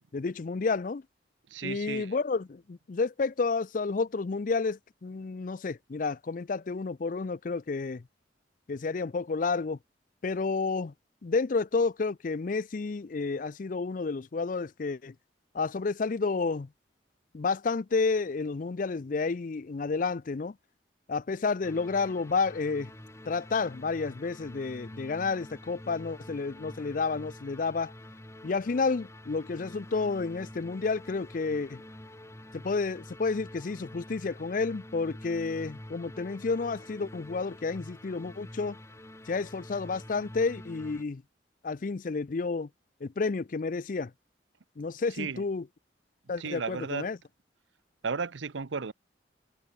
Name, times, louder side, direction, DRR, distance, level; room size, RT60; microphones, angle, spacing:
voice 1, 0.1-1.0 1.6-8.0 8.7-9.8 10.2-10.9 11.2-15.1 15.5-16.7 17.3-20.6 21.1-22.9 23.3-27.9 28.4-31.8 32.5-38.8 39.3-41.2 41.6-42.7 43.0-44.1 44.8-45.7 46.3-47.2, left 4 dB, 45° left, 0.4 m, -30 dB
voice 2, 1.5-2.2 45.1-45.5 46.4-47.1 48.0-48.9, right 5 dB, 85° right, 0.8 m, -34 dB
sound 1, 21.6-41.0, left 1 dB, 15° left, 1.9 m, -47 dB
head